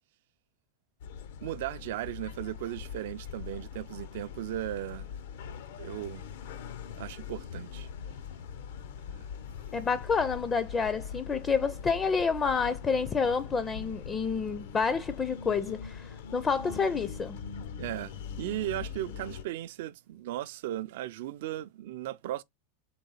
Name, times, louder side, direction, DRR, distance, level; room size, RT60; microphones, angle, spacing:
sound 1, 1.0-19.4, left 7 dB, 75° left, 0.6 m, -42 dB
voice 1, 1.4-5.1 5.4-6.3 7.0-7.9 9.1-9.2 17.8-22.4, right 13 dB, 70° right, 0.4 m, -37 dB
voice 2, 9.7-17.4, left 5 dB, 20° left, 0.4 m, -29 dB
3.9 x 3.2 x 4.0 m
supercardioid pair, 130°, 0 cm